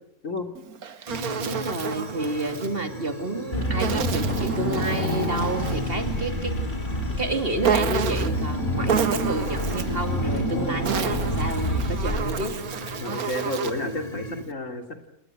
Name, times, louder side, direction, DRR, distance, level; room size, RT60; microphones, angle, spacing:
Insect, 0.5-2.7 3.8-5.9 7.6-8.4 8.9-10.0 10.6-13.9, right 7 dB, 90° right, 1.7 m, -30 dB
sound 1, 1.1-14.4, equal, 25° left, 2.6 m, -37 dB
voice 1, 1.4-6.6 7.2-12.6 13.1-13.3, right 2 dB, 40° right, 6 dB, 2.7 m, -30 dB
Car / Engine, 3.5-12.7, equal, 45° left, 5.3 m, -28 dB
voice 2, 13.0-14.8, left 2 dB, 60° left, 6 dB, 3.2 m, -31 dB
29.0 x 20.0 x 9.1 m, 0.82 s
omnidirectional pair, 1.5 m